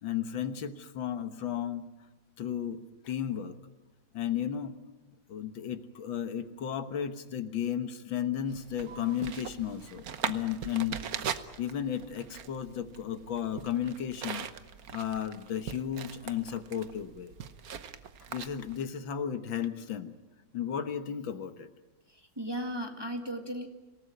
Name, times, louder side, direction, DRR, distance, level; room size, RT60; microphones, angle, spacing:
voice 1, 0.0-1.9 2.4-3.6 4.1-4.8 5.3-14.5 14.9-17.3 18.3-20.1 20.5-21.7, left 9 dB, 80° left, 9 dB, 2.0 m, -34 dB
sound 1, 8.5-18.8, right 8 dB, 55° right, 1.3 m, -41 dB
voice 2, 22.1-23.7, equal, 15° right, 3 dB, 1.8 m, -36 dB
26.5 x 18.0 x 9.4 m, 1.1 s
omnidirectional pair, 2.1 m